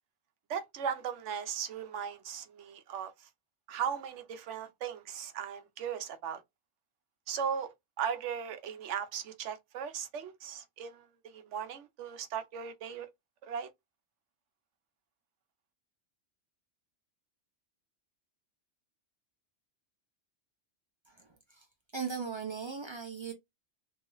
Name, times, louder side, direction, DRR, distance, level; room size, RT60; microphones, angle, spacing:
voice 1, 0.5-3.3 3.7-6.4 7.3-13.1 13.4-13.7, right 7 dB, 80° right, 0.9 m, -37 dB
voice 2, 21.1-21.7 21.9-23.3, right 6 dB, 40° right, 0.4 m, -38 dB
3.0 x 2.9 x 2.3 m
omnidirectional pair, 1.2 m